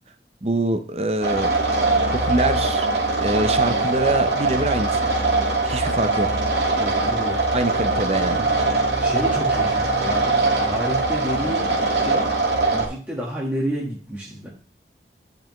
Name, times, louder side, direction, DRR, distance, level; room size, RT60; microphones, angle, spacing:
voice 1, 0.4-1.5 2.1-2.9 3.2-5.1 5.6-6.3 7.5-8.5, right 2 dB, 35° right, 8 dB, 0.7 m, -24 dB
sound 1, 1.2-12.9, right 3 dB, 75° right, 2.0 m, -21 dB
voice 2, 6.7-7.6 7.8-8.0 9.0-10.3 10.6-12.3 12.7-14.5, equal, 10° right, -5 dB, 1.4 m, -30 dB
11.5 x 5.4 x 3.1 m, 0.40 s
head